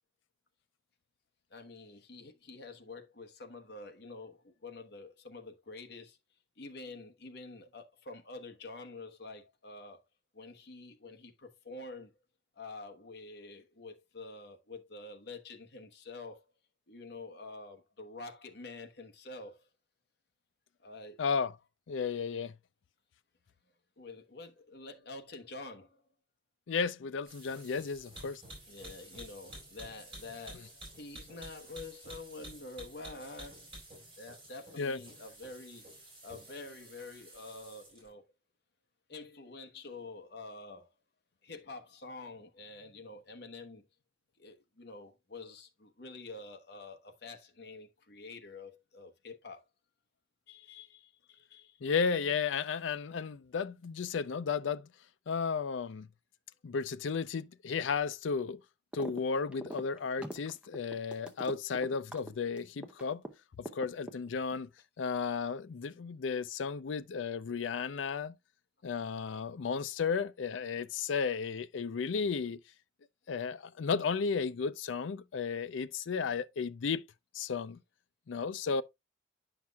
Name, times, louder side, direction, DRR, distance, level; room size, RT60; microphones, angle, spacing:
voice 1, 1.5-6.2 6.6-10.0 10.3-12.1 12.6-16.4 16.9-19.7 20.8-21.2 24.0-26.0 28.7-33.7 34.2-35.9 36.2-38.2 39.1-40.9 41.4-43.8 44.4-49.6 50.5-51.8, left 3 dB, 60° left, 1.1 m, -47 dB
voice 2, 21.2-21.5 21.9-22.5 26.7-28.4 34.8-35.0 51.8-54.9 55.3-56.1 56.6-58.6 58.9-63.2 63.6-64.7 65.0-68.3 68.8-72.6 73.3-77.1 77.3-77.8 78.3-78.8, left 5 dB, 90° left, 0.4 m, -34 dB
sound 1, 27.3-38.1, right 1 dB, 25° right, 4.5 m, -51 dB
sound 2, 58.9-59.2 59.5-63.3 63.7-64.5, right 1 dB, 5° right, 0.7 m, -43 dB
9.5 x 5.9 x 2.3 m
head